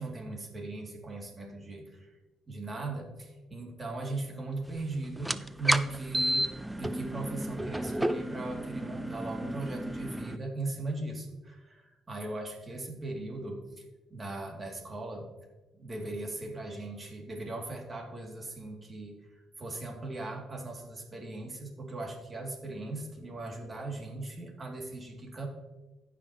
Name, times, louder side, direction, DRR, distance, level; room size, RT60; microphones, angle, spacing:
voice 1, 0.0-2.1 2.5-6.5 6.8-13.8 14.1-15.3 15.7-25.5, right 2 dB, 30° right, 1 dB, 2.5 m, -38 dB
sound 1, 5.2-10.4, right 1 dB, 10° right, 0.4 m, -32 dB
17.0 x 5.9 x 3.0 m, 1.1 s
cardioid pair, 90°, 0 cm